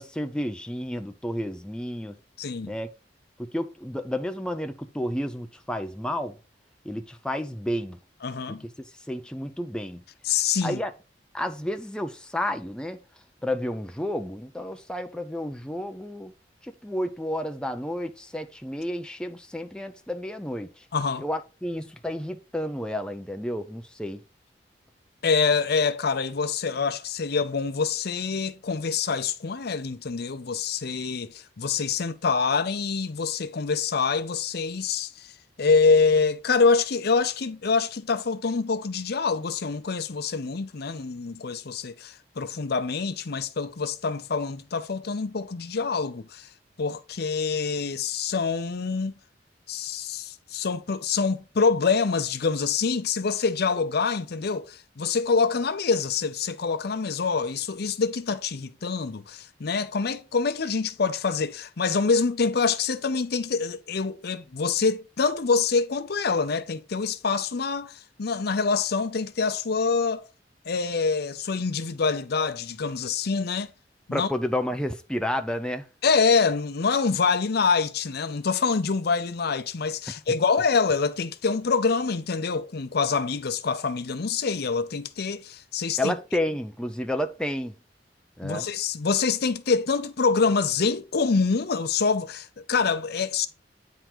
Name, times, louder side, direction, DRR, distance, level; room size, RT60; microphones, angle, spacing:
voice 1, 0.0-2.2 2.6-2.9 3.4-6.4 6.8-8.0 8.5-10.0 10.6-10.9 11.3-13.0 13.4-16.3 16.6-20.9 21.2-24.2 74.1-75.9 86.0-87.8 88.4-88.7, left 1 dB, 5° left, 0.5 m, -31 dB
voice 2, 2.4-2.7 8.2-8.6 10.3-10.8 20.9-21.2 25.2-35.3 35.6-46.5 46.8-49.1 49.7-70.2 70.7-73.7 74.1-74.3 76.0-86.1 88.4-93.5, left 5 dB, 60° left, 0.6 m, -25 dB
9.0 x 3.9 x 4.5 m
head